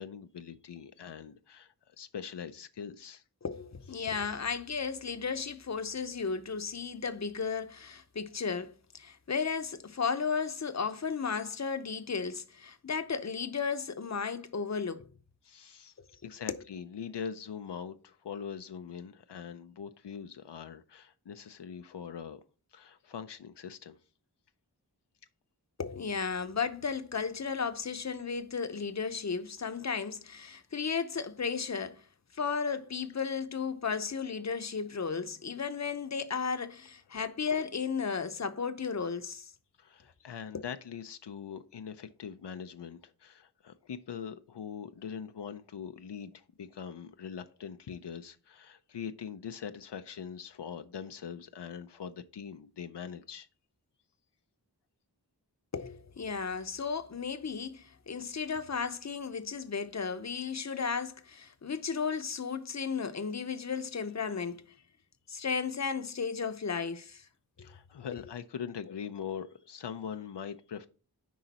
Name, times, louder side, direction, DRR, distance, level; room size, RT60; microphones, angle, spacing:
voice 1, 0.0-3.2 4.0-4.1 15.4-15.9 16.2-22.4 22.7-24.0 39.8-53.5 67.6-70.9, left 7 dB, 90° left, 0.6 m, -42 dB
voice 2, 3.4-15.1 16.5-16.6 25.8-32.0 32.3-39.5 40.5-40.6 55.7-64.6 65.3-67.2, left 5 dB, 45° left, 0.7 m, -34 dB
10.5 x 3.9 x 4.1 m
wide cardioid pair, 50°, 40 cm